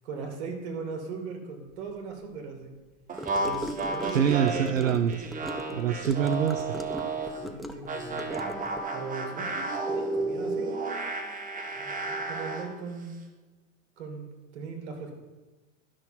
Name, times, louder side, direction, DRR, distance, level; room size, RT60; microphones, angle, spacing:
voice 1, 0.0-2.7 3.4-4.8 7.3-8.3 8.9-11.3 11.7-13.1 14.0-14.3 14.5-15.1, right 4 dB, 60° right, 3 dB, 2.7 m, -39 dB
sound 1, 3.1-7.4 7.9-12.7, right 3 dB, 20° right, 1.4 m, -32 dB
Gurgling / Car passing by / Sink (filling or washing), 3.2-8.9, equal, ahead, 0.5 m, -38 dB
voice 2, 4.1-5.2 5.7-6.8, right 8 dB, 80° right, 12 dB, 0.6 m, -25 dB
12.0 x 6.2 x 6.0 m, 1.2 s
figure-of-eight pair, 90°, 39 cm